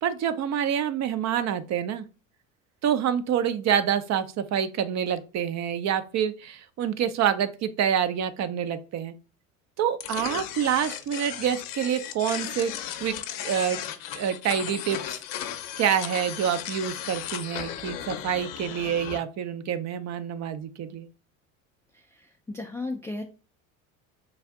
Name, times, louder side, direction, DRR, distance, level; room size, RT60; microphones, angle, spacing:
voice 1, 0.0-2.1 2.8-9.1 9.8-12.7 13.0-13.1 13.4-13.8 14.1-15.0 15.8-21.1, right 9 dB, 40° right, 12 dB, 0.5 m, -27 dB
sound 1, 10.0-19.2, left 11 dB, 55° left, 0.6 m, -36 dB
voice 2, 22.1-23.2, left 2 dB, 10° left, 2 dB, 0.3 m, -35 dB
3.4 x 2.5 x 3.6 m, 0.34 s
hypercardioid pair, 80°, 41 cm